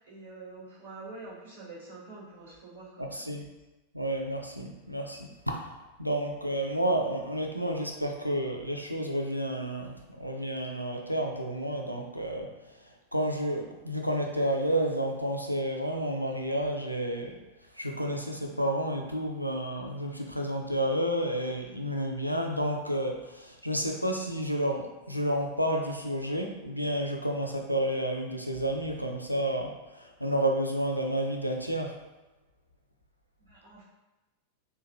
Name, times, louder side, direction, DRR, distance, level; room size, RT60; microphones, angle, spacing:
voice 1, 0.0-3.2 33.4-33.8, right 3 dB, 65° right, -9 dB, 1.4 m, -46 dB
voice 2, 3.0-3.4 3.9-5.6 6.0-12.5 13.1-17.3 17.7-32.0, right 1 dB, 90° left, 2 dB, 0.4 m, -30 dB
3.7 x 2.2 x 2.6 m, 1.1 s
figure-of-eight pair, 90°, 0 cm